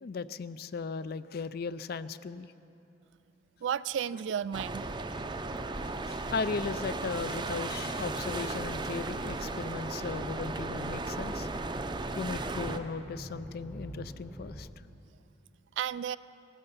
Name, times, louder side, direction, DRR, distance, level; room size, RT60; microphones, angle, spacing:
voice 1, 0.0-2.5 5.8-11.5 12.1-14.7, left 4 dB, 55° left, 15 dB, 0.4 m, -37 dB
voice 2, 3.6-4.9 15.8-16.2, right 8 dB, 75° right, 18 dB, 0.3 m, -33 dB
sound 1, 4.5-12.8, right 2 dB, 25° right, 0.5 m, -35 dB
sound 2, 9.8-14.7, equal, 10° left, 0.8 m, -48 dB
16.5 x 12.0 x 5.7 m, 2.9 s
head